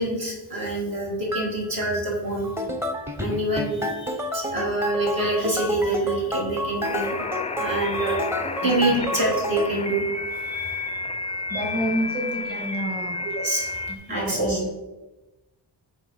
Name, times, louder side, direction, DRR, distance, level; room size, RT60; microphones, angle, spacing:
voice 1, 0.0-2.5 3.2-7.2 7.6-8.3 8.6-10.0 10.4-10.8 11.5-11.6 13.4-14.6, right 2 dB, 50° right, -3 dB, 2.2 m, -26 dB
sound 1, 1.3-1.5 1.8-2.1 2.4-9.7, left 1 dB, 5° right, 0.8 m, -30 dB
sound 2, 6.8-14.0, left 3 dB, 15° left, 0.4 m, -31 dB
voice 2, 11.5-13.3 13.9-14.7, right 1 dB, 20° right, -1 dB, 2.0 m, -29 dB
8.9 x 3.6 x 4.6 m, 1.1 s
cardioid pair, 70°, 45 cm